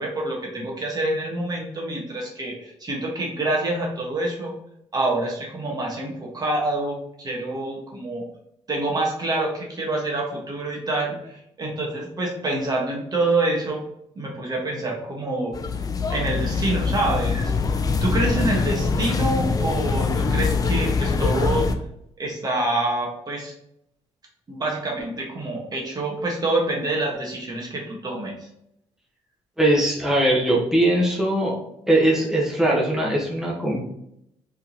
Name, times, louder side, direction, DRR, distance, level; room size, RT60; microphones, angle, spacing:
voice 1, 0.0-4.5 4.9-8.2 8.7-13.8 14.1-15.5 16.1-17.5 18.0-21.7 22.2-23.5 24.5-28.3, right 2 dB, 35° right, -2 dB, 1.5 m, -26 dB
sound 1, 15.5-21.7, left 4 dB, 35° left, 0.5 m, -23 dB
voice 2, 29.6-31.5 31.9-33.8, right 1 dB, 5° right, -4 dB, 1.3 m, -20 dB
4.4 x 3.7 x 3.0 m, 0.77 s
cardioid pair, 95°, 11 cm